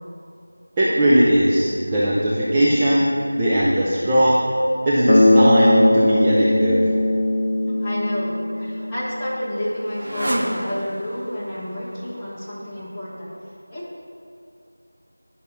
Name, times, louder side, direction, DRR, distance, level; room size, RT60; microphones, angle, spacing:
voice 1, 0.8-4.4 4.8-6.8, right 1 dB, 15° right, -8 dB, 0.6 m, -18 dB
Bass guitar, 5.1-9.1, left 1 dB, 30° left, 1.1 m, -18 dB
voice 2, 7.6-13.3 13.7-13.8, left 1 dB, 10° left, -11 dB, 1.3 m, -30 dB
Motorcycle, 8.5-13.5, right 1 dB, 45° right, 1.0 m, -33 dB
10.5 x 5.8 x 5.4 m, 2.6 s
figure-of-eight pair, 175°, 0 cm